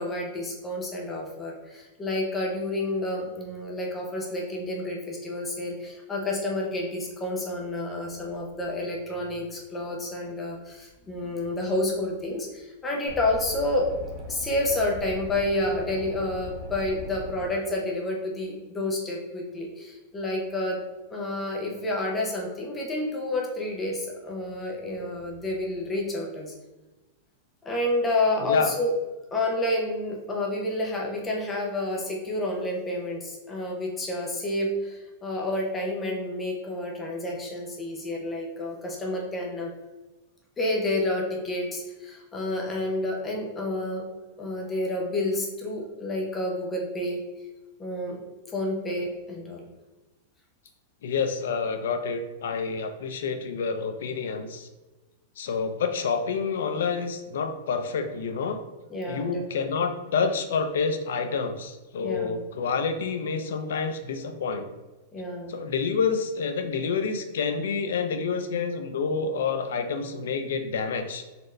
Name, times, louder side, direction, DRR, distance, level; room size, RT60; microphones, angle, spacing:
voice 1, 0.0-13.9 14.3-20.8 21.1-26.5 27.6-28.9 29.3-39.7 40.6-44.0 44.4-47.2 47.8-48.2 48.5-49.7 58.9-59.7 62.0-62.4 65.1-65.5, left 1 dB, 10° left, -1 dB, 0.6 m, -29 dB
sound 1, 13.1-17.4, left 2 dB, 25° right, 0.9 m, -39 dB
voice 2, 51.0-54.7 55.4-58.6 59.1-64.7 65.5-71.2, left 5 dB, 80° left, 8 dB, 0.4 m, -28 dB
4.1 x 2.6 x 3.1 m, 1.1 s
supercardioid pair, 180°, 0 cm